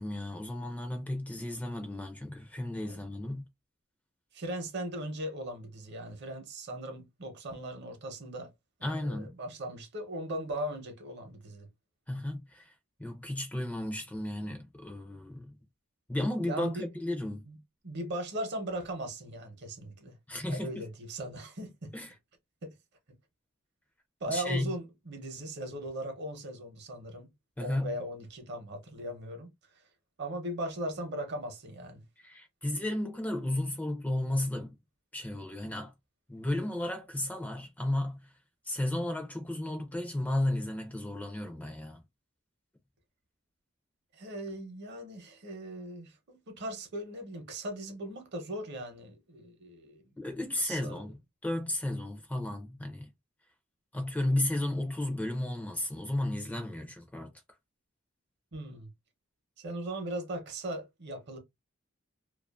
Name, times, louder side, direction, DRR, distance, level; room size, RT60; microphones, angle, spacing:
voice 1, 0.0-3.5 8.8-9.3 12.1-12.7 13.0-15.5 16.1-17.4 20.3-20.9 21.9-22.1 24.3-24.7 27.6-28.0 32.2-34.7 35.1-35.9 36.3-38.2 38.7-42.0 50.2-51.2 51.4-53.1 53.9-57.3, left 1 dB, 10° left, 0.4 m, -33 dB
voice 2, 4.3-8.5 8.8-11.7 16.4-16.9 17.5-17.6 17.8-20.2 20.5-21.9 22.6-22.7 24.2-27.3 27.6-29.5 30.2-32.0 44.1-50.1 50.6-51.0 58.5-58.9 59.6-61.4, right 1 dB, 55° right, 0.8 m, -38 dB
2.4 x 2.4 x 2.3 m
head